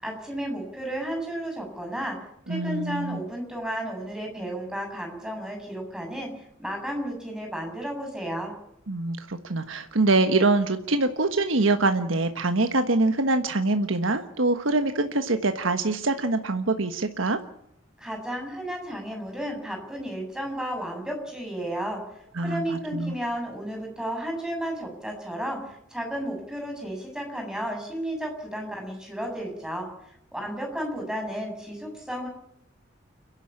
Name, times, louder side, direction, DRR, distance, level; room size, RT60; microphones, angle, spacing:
voice 1, 0.0-2.2 2.5-6.3 6.6-8.5 18.0-22.0 22.4-29.9 30.3-32.3, right 1 dB, 5° right, 2 dB, 7.6 m, -33 dB
voice 2, 2.5-3.2 8.9-17.4 22.4-23.1, right 2 dB, 75° right, 7 dB, 1.4 m, -24 dB
30.0 x 11.5 x 8.7 m, 0.75 s
head